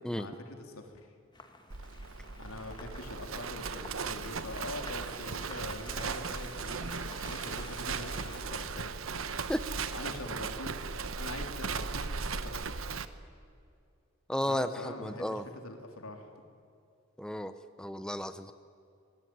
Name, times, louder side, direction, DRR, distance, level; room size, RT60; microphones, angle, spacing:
voice 1, 0.1-1.1 2.4-6.9 7.3-8.9 9.9-10.7 11.2-12.6 14.5-16.4, left 2 dB, 85° left, 4 dB, 3.6 m, -44 dB
sound 1, 1.3-8.4, left 3 dB, 20° left, 2.0 m, -51 dB
Livestock farm animals working animals, 1.7-13.0, right 5 dB, 70° right, 1.1 m, -37 dB
voice 2, 14.3-15.5 17.2-17.5 17.8-18.5, equal, 5° left, 10 dB, 0.7 m, -33 dB
27.0 x 19.0 x 9.5 m, 2.5 s
head